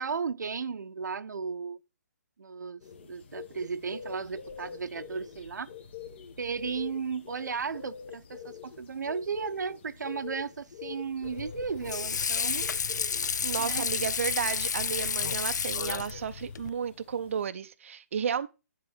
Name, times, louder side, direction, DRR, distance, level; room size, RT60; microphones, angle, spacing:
voice 1, 0.0-1.8 2.4-5.7 6.4-12.7 13.6-13.9, right 5 dB, 85° right, 0.8 m, -35 dB
sound 1, 2.8-17.5, left 7 dB, 40° left, 1.3 m, -47 dB
Water / Sink (filling or washing), 11.2-16.7, left 6 dB, 80° left, 0.5 m, -31 dB
voice 2, 13.4-18.5, right 7 dB, 45° right, 0.6 m, -33 dB
10.5 x 3.9 x 7.2 m
hypercardioid pair, 170°, 9 cm